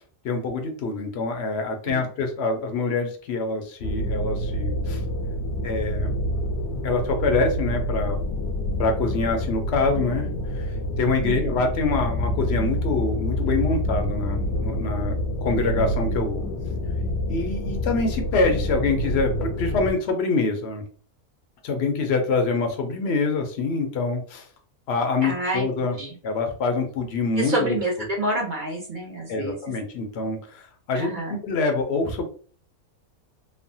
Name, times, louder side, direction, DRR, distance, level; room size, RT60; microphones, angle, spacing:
voice 1, 0.2-5.0 5.6-6.1 6.8-8.2 8.8-10.7 11.0-15.2 15.4-16.4 17.3-20.8 21.6-24.5 24.9-26.0 26.2-28.1 29.3-32.3, left 3 dB, 65° left, 4 dB, 0.6 m, -25 dB
sound 1, 3.8-19.9, equal, 85° left, 1.1 m, -27 dB
voice 2, 11.2-11.6 25.2-26.1 27.4-29.6 30.9-31.4, right 1 dB, 55° right, -2 dB, 0.5 m, -28 dB
3.1 x 2.1 x 2.6 m, 0.43 s
omnidirectional pair, 1.6 m